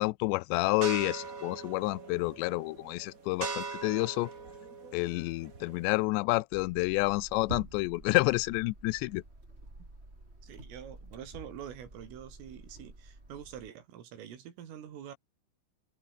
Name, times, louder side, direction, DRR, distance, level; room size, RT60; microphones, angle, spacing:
voice 1, 0.0-4.3 4.9-9.2, left 22 dB, 80° left, 2.6 m, -29 dB
sound 1, 0.8-5.9, right 4 dB, 35° right, 1.3 m, -41 dB
sound 2, 6.5-13.7, right 2 dB, 15° right, 5.1 m, -48 dB
voice 2, 10.4-15.2, right 9 dB, 85° right, 5.9 m, -46 dB
omnidirectional pair, 5.7 m